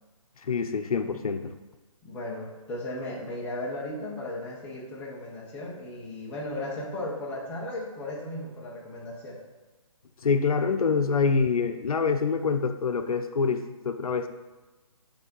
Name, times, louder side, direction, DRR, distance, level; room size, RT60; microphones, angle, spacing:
voice 1, 0.4-1.5 10.2-14.3, left 5 dB, 85° left, 8 dB, 0.6 m, -26 dB
voice 2, 2.0-9.4, left 1 dB, 5° left, -4 dB, 0.5 m, -36 dB
6.1 x 3.4 x 5.3 m, 1.2 s
hypercardioid pair, 160°, 18 cm